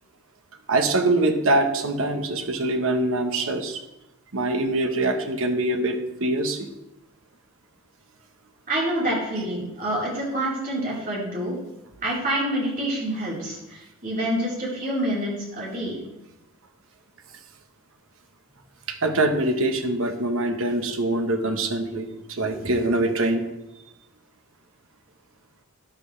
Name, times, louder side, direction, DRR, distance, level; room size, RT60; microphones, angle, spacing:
voice 1, 0.7-3.8 4.3-6.7 18.9-23.5, right 2 dB, 70° right, 5 dB, 1.2 m, -24 dB
voice 2, 8.7-11.6 12.0-16.0, right 1 dB, 40° right, -6 dB, 4.1 m, -27 dB
12.5 x 10.5 x 3.3 m, 0.97 s
head